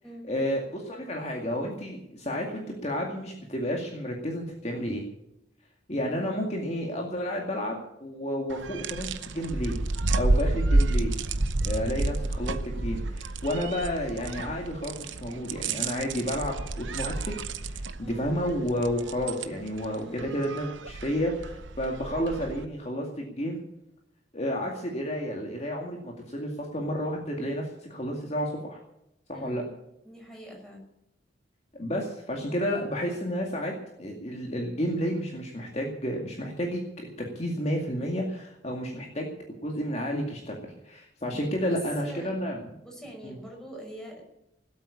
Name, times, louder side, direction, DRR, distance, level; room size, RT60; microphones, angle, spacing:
voice 1, 0.3-5.1 5.9-9.8 10.2-11.1 11.6-17.3 17.6-23.6 24.3-28.8 29.3-29.6 31.7-33.7 34.0-39.3 39.6-42.6 43.2-43.4, equal, 35° left, 0 dB, 2.2 m, -31 dB
sound 1, 8.5-22.6, right 2 dB, 85° right, 0.9 m, -30 dB
voice 2, 11.8-12.2 18.0-18.3 19.9-20.3 29.3-29.7 30.0-30.8 41.2-41.4 41.7-42.3 42.8-44.2, equal, 5° left, -2 dB, 5.7 m, -44 dB
18.5 x 8.4 x 8.6 m, 0.84 s
head